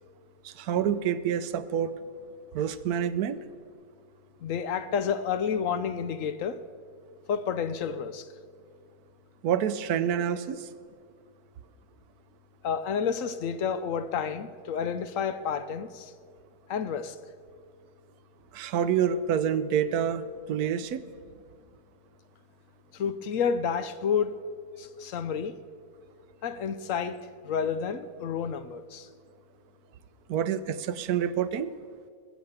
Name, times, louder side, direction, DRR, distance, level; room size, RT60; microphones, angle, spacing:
voice 1, 0.4-2.0 2.5-3.4 9.4-10.7 18.5-21.0 30.3-31.7, right 8 dB, 85° right, 1.2 m, -27 dB
voice 2, 4.4-6.6 7.3-8.3 12.6-16.1 16.7-17.2 22.9-24.4 24.8-25.6 26.4-29.1, left 7 dB, 65° left, 0.9 m, -30 dB
20.5 x 7.2 x 8.0 m
omnidirectional pair, 1.6 m